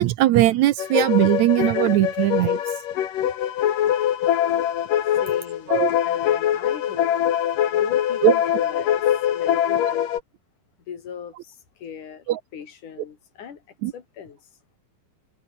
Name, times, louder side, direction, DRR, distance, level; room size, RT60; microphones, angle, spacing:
voice 1, 0.0-2.6 5.7-5.9 8.2-8.3 12.3-12.4 13.8-13.9, right 14 dB, 75° right, 1.9 m, -19 dB
sound 1, 0.8-10.2, left 10 dB, 90° left, 3.5 m, -23 dB
voice 2, 5.2-7.1 7.7-9.0 9.3-10.1 10.9-12.2 12.5-13.6 13.9-14.4, left 7 dB, 70° left, 4.4 m, -39 dB
omnidirectional pair, 3.7 m